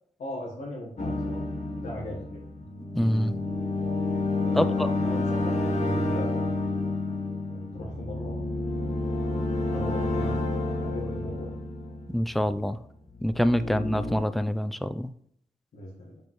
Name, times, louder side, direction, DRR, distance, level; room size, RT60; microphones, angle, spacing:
voice 1, 0.2-2.4 4.4-6.5 7.5-8.6 9.7-11.5 13.6-13.7 15.7-16.2, left 1 dB, 75° left, -4 dB, 1.4 m, -39 dB
sound 1, 1.0-12.6 13.1-14.2, left 2 dB, 55° left, 1.3 m, -29 dB
voice 2, 2.9-3.4 4.5-4.9 12.1-12.8 13.2-15.1, equal, ahead, 12 dB, 0.4 m, -26 dB
5.8 x 5.2 x 3.1 m, 0.67 s
cardioid pair, 70°, 14 cm